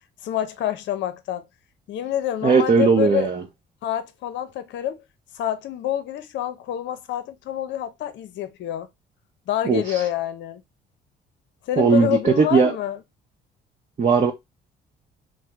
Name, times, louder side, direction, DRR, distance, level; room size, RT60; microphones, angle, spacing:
voice 1, 0.2-1.4 1.9-3.3 3.8-5.0 5.3-8.9 9.5-10.6 11.6-13.0, left 11 dB, 65° left, 0.5 m, -27 dB
voice 2, 2.4-3.4 9.7-10.0 11.8-12.7 14.0-14.3, right 5 dB, 35° right, 0.7 m, -18 dB
2.8 x 2.0 x 3.4 m
supercardioid pair, 65°, 21 cm